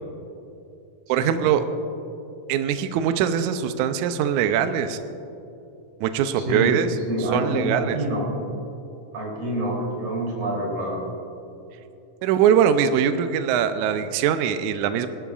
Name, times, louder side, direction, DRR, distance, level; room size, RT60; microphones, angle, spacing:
voice 1, 1.1-1.6 2.5-5.0 6.0-6.9 7.3-8.0 12.2-15.1, right 8 dB, 90° right, 9 dB, 1.7 m, -22 dB
voice 2, 6.4-6.8 7.1-8.3 9.1-11.0, right 1 dB, 70° right, -3 dB, 4.9 m, -27 dB
23.0 x 12.5 x 2.5 m, 2.8 s
omnidirectional pair, 4.2 m